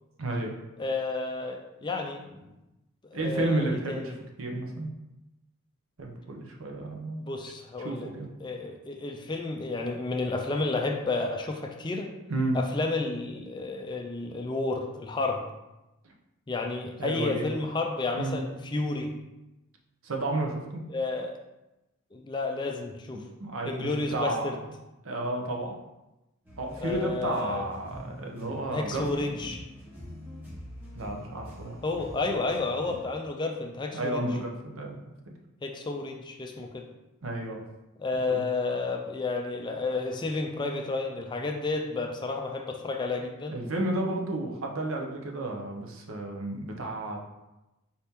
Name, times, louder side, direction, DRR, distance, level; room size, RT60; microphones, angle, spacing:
voice 1, 0.2-0.5 3.1-4.0 4.4-4.9 6.0-7.2 7.8-8.3 12.3-12.6 17.0-17.5 18.1-18.4 20.0-20.8 23.4-24.5 25.0-25.7 26.6-29.1 30.9-31.8 33.9-35.1 37.2-37.6 38.1-38.4 43.5-47.2, right 2 dB, 75° right, 2 dB, 0.7 m, -32 dB
voice 2, 0.8-2.5 3.1-4.1 7.1-8.1 8.4-12.1 12.5-15.4 16.5-19.1 20.9-21.4 22.1-23.2 23.7-24.6 26.8-27.6 28.7-29.6 31.8-34.2 35.6-36.9 38.0-43.6, left 3 dB, 20° left, 3 dB, 0.3 m, -31 dB
sound 1, 26.4-33.0, equal, 10° right, 0.8 m, -44 dB
4.1 x 2.8 x 3.6 m, 0.98 s
head